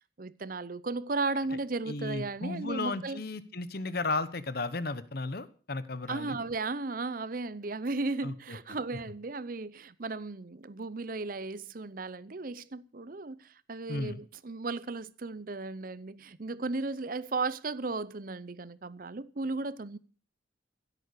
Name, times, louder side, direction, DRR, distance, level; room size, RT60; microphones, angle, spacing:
voice 1, 0.2-3.2 6.1-20.0, right 3 dB, 45° right, 0.7 m, -35 dB
voice 2, 1.9-6.4 8.2-8.6 13.9-14.2, left 3 dB, 55° left, 1.1 m, -34 dB
16.0 x 8.3 x 6.6 m
head